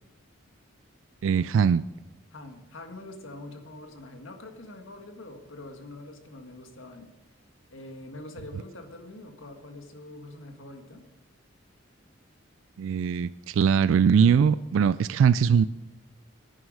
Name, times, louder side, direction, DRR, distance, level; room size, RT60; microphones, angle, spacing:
voice 1, 1.2-1.8 12.8-15.6, right 7 dB, 75° right, 16 dB, 0.3 m, -21 dB
voice 2, 2.3-7.2 7.7-11.0, left 2 dB, 75° left, 5 dB, 1.6 m, -44 dB
11.0 x 9.5 x 6.5 m, 1.1 s
head